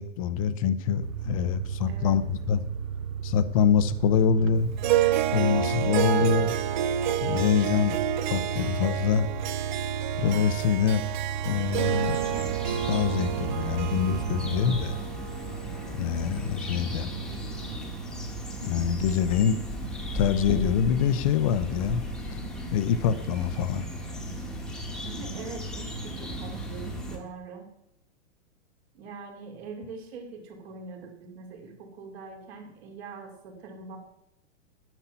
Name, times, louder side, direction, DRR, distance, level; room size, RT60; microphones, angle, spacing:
voice 1, 0.0-2.6 3.2-4.7 5.3-6.5 7.2-8.0 8.2-9.3 10.2-11.0 11.4-12.2 12.9-15.0 15.9-17.1 18.6-19.6 20.1-22.0 22.3-22.4 22.7-23.8, left 8 dB, 30° left, 13 dB, 0.5 m, -25 dB
sound 1, 1.0-15.0, right 8 dB, 85° right, 0.7 m, -34 dB
voice 2, 1.4-2.2 10.7-10.9 25.0-27.7 28.9-34.0, right 4 dB, 55° right, 3 dB, 2.9 m, -43 dB
Harp, 4.8-17.3, right 11 dB, 40° right, 0.5 m, -30 dB
sound 2, 11.7-27.2, right 1 dB, ahead, 1.2 m, -36 dB
10.0 x 10.0 x 5.6 m, 0.80 s
supercardioid pair, 165°, 38 cm